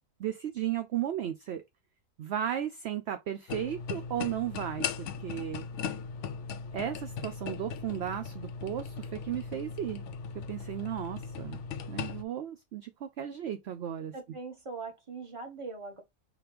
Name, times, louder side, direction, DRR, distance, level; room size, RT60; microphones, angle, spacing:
voice 1, 0.2-1.6 2.2-5.7 6.7-10.0 10.5-11.6 11.9-14.1, right 10 dB, 60° right, 0.7 m, -35 dB
sound 1, 3.5-12.2, left 6 dB, 65° left, 0.8 m, -38 dB
voice 2, 10.8-11.3 14.1-16.0, right 4 dB, 25° right, 1.1 m, -42 dB
4.8 x 3.1 x 3.3 m
omnidirectional pair, 1.6 m